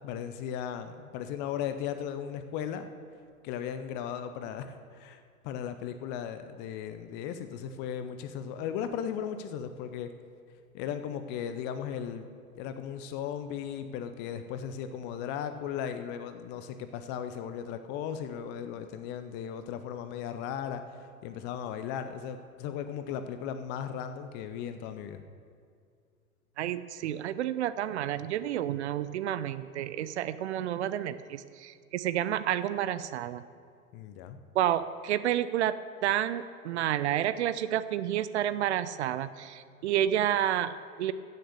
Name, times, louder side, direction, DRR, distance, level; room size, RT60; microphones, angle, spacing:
voice 1, 0.0-2.9 3.4-10.1 10.7-12.3 12.6-25.2 33.9-34.4, left 8 dB, 25° left, 9 dB, 0.5 m, -36 dB
voice 2, 26.6-33.4 34.5-35.7 36.0-41.1, right 11 dB, 50° right, 14 dB, 0.6 m, -30 dB
15.0 x 6.6 x 6.6 m, 2.2 s
figure-of-eight pair, 105°, 44 cm